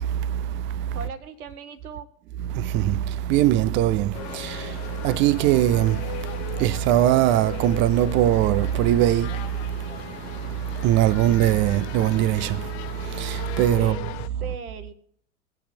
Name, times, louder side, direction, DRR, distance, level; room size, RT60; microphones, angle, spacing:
voice 1, 0.0-1.0 2.5-14.0, right 12 dB, 25° right, 0.5 m, -22 dB
voice 2, 0.9-2.1 13.8-14.9, right 6 dB, 75° right, 1.4 m, -38 dB
sound 1, 4.1-14.3, left 13 dB, 45° left, 0.7 m, -38 dB
24.5 x 8.4 x 2.7 m
figure-of-eight pair, 90°, 44 cm